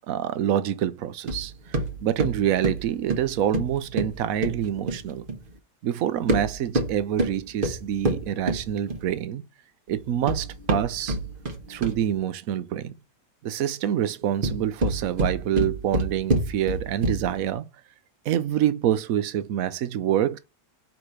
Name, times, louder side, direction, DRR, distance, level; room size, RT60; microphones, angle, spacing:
voice 1, 0.1-1.5 2.0-5.3 5.8-9.5 9.9-11.2 11.7-12.9 13.4-17.7 18.3-20.4, right 10 dB, 60° right, 1.0 m, -26 dB
sound 1, 1.3-5.5 6.2-9.2 10.0-12.2 14.2-17.5, right 2 dB, 35° right, 1.3 m, -28 dB
4.9 x 3.7 x 5.6 m
omnidirectional pair, 1.8 m